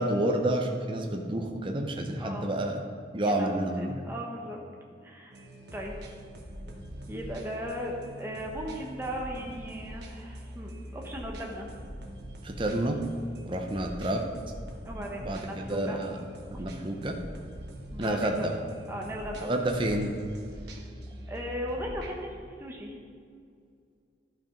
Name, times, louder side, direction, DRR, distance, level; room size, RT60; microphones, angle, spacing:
voice 1, 0.0-2.8 3.1-4.0 12.4-13.0 13.4-14.2 15.2-16.2 16.5-17.2 18.0-18.6 19.4-20.1, right 1 dB, 30° right, 3 dB, 0.7 m, -29 dB
voice 2, 2.2-2.5 3.2-3.5 3.8-4.6 5.0-5.4 5.7-5.9 7.1-11.7 14.9-16.0 16.5-16.7 17.9-18.5 18.9-19.5 20.8-20.9 21.3-23.0, equal, 15° right, -1 dB, 1.0 m, -37 dB
sound 1, 5.3-22.3, equal, 60° right, 1.3 m, -43 dB
11.5 x 5.9 x 5.1 m, 2.2 s
head